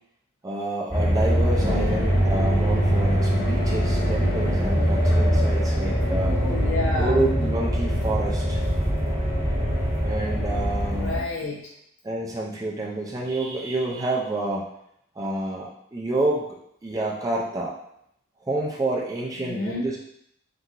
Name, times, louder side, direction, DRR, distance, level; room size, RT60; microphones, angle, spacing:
voice 1, 0.4-6.4 7.0-8.6 10.0-11.1 12.0-14.6 15.2-17.7 18.5-20.0, right 2 dB, 15° right, -3 dB, 0.3 m, -28 dB
sound 1, 0.9-11.2, equal, 25° left, 1.2 m, -23 dB
voice 2, 1.6-2.2 6.2-7.2 10.9-11.6 19.4-19.9, left 2 dB, 60° left, -3 dB, 0.5 m, -30 dB
2.9 x 2.5 x 2.4 m, 0.73 s
head